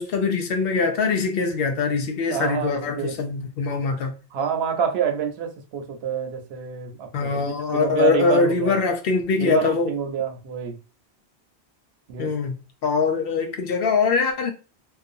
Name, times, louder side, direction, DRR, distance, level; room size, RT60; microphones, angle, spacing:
voice 1, 0.0-4.1 7.1-9.9 12.2-12.5 12.8-14.5, left 4 dB, 65° left, 0.7 m, -23 dB
voice 2, 2.3-3.1 4.3-8.7 9.4-10.8 12.1-12.3, right 7 dB, 75° right, 0.9 m, -27 dB
2.5 x 2.2 x 2.6 m
omnidirectional pair, 1.1 m